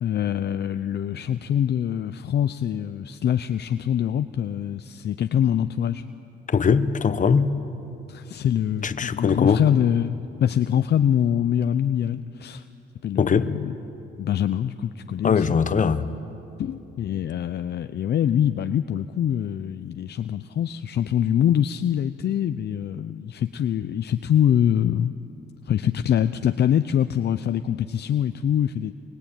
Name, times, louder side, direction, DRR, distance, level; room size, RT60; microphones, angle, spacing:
voice 1, 0.0-6.1 8.1-10.1 10.4-12.7 13.0-13.7 14.2-15.6 16.6-25.1 25.7-28.9, left 9 dB, 55° left, 0.7 m, -24 dB
voice 2, 6.5-7.6 8.8-9.6 13.2-13.5 15.2-16.1, left 6 dB, 40° left, 1.2 m, -21 dB
24.0 x 23.0 x 9.1 m
cardioid pair, 90°, 20 cm